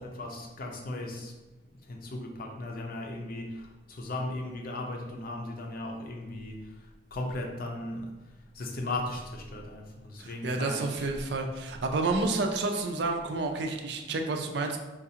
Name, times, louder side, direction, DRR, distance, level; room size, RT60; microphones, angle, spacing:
voice 1, 0.0-1.3 1.8-8.1 8.5-11.1, left 2 dB, 50° left, 1 dB, 0.6 m, -37 dB
voice 2, 10.2-14.8, right 3 dB, 60° right, 4 dB, 0.4 m, -30 dB
5.1 x 2.4 x 2.8 m, 1.1 s
head